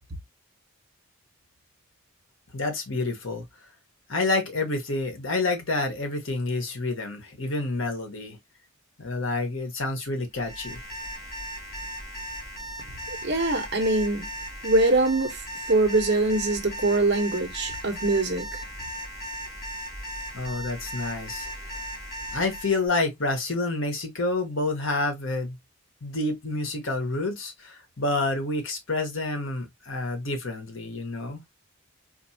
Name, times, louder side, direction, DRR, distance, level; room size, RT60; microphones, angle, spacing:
voice 1, 2.5-3.4 4.1-8.4 9.0-10.8 20.3-21.5 22.3-25.6 26.0-31.4, left 2 dB, 65° left, 1.2 m, -28 dB
Alarm, 10.3-22.8, equal, 40° left, 2.3 m, -37 dB
voice 2, 13.1-14.3 14.6-15.4 15.7-18.6, right 2 dB, 55° right, 1.0 m, -23 dB
4.4 x 2.7 x 2.8 m
head